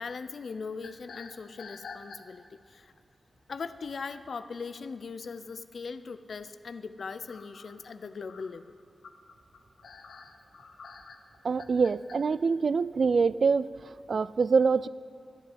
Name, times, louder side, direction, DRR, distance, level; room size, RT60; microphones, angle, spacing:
voice 1, 0.0-2.9 3.5-8.8, left 5 dB, 70° left, 12 dB, 0.6 m, -40 dB
sound 1, 0.8-2.6 3.1-3.4 4.9-5.0 5.4-5.5 7.3-12.2, left 5 dB, 90° left, 0.9 m, -48 dB
voice 2, 11.4-14.9, right 5 dB, 65° right, 17 dB, 0.3 m, -25 dB
13.0 x 7.9 x 8.5 m, 2.4 s
cardioid pair, 60°, 0 cm